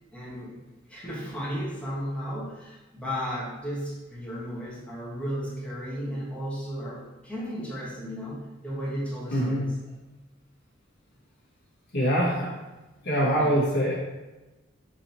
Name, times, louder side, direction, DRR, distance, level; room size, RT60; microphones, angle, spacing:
voice 1, 0.1-0.6 0.9-9.7 13.3-13.5, equal, 5° left, -7 dB, 1.2 m, -34 dB
voice 2, 9.3-9.6 11.9-12.5 13.0-13.9, equal, 55° left, -7 dB, 1.3 m, -24 dB
6.1 x 3.0 x 2.8 m, 1.1 s
head